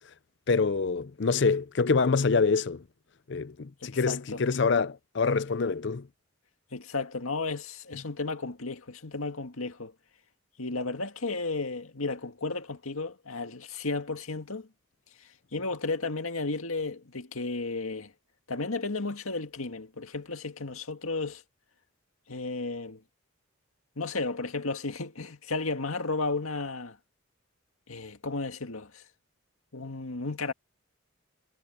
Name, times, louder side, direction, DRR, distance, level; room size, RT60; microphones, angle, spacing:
voice 1, 0.5-2.8 3.3-6.1, left 4 dB, 55° left, 0.5 m, -26 dB
voice 2, 3.8-4.4 6.7-9.9 10.6-14.7 15.5-18.1 18.5-21.4 22.3-23.0 24.0-27.0 27.9-29.0 29.7-30.5, left 3 dB, 85° left, 2.0 m, -33 dB
head